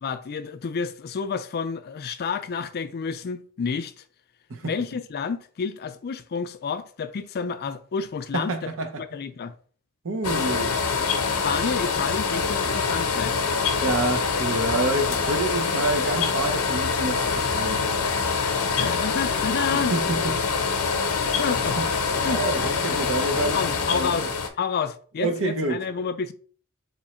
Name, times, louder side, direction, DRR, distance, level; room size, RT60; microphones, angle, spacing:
voice 1, 0.0-3.9 4.6-8.7 9.0-9.6 11.4-13.4 18.8-19.9 21.2-21.8 22.2-22.4 23.5-24.3 24.6-26.3, left 6 dB, 45° left, 0.4 m, -29 dB
voice 2, 8.3-8.9 10.0-10.8 13.8-18.0 19.7-20.3 21.8-21.9 22.2-24.3 25.2-25.8, right 2 dB, 65° right, 0.8 m, -28 dB
sound 1, 10.2-24.5, left 5 dB, 85° left, 0.8 m, -25 dB
3.6 x 3.1 x 4.3 m
head